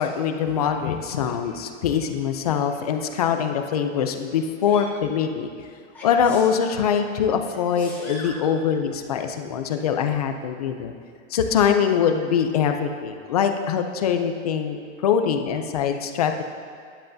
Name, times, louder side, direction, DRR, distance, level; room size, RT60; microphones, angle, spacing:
voice 1, 0.0-5.5 6.0-10.9 11.3-16.4, left 7 dB, 30° left, 6 dB, 0.4 m, -23 dB
Sneeze, 4.6-4.9 5.9-6.8 7.5-8.4 9.7-9.8, left 1 dB, 5° left, 1.8 m, -40 dB
13.0 x 10.0 x 2.6 m, 2.3 s
supercardioid pair, 175°, 38 cm